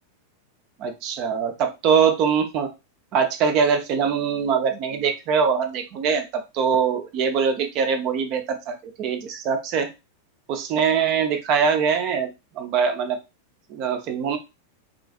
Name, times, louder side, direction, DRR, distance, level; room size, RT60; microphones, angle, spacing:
voice 1, 0.8-2.7 3.1-9.9 10.5-12.3 12.6-13.2 13.7-14.4, right 6 dB, 40° right, 6 dB, 0.6 m, -23 dB
3.7 x 2.4 x 2.4 m, 0.25 s
figure-of-eight pair, 90°, 0 cm